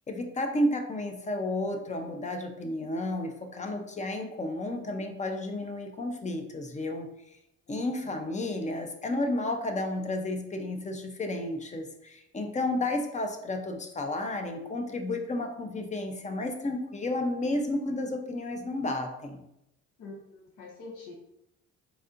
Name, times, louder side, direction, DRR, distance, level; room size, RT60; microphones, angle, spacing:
voice 1, 0.1-7.1 7.7-19.4, left 1 dB, 25° left, 4 dB, 0.5 m, -32 dB
voice 2, 7.7-8.2 20.0-21.1, left 3 dB, 80° left, -3 dB, 1.0 m, -46 dB
4.1 x 2.7 x 2.5 m, 0.82 s
cardioid pair, 90°, 30 cm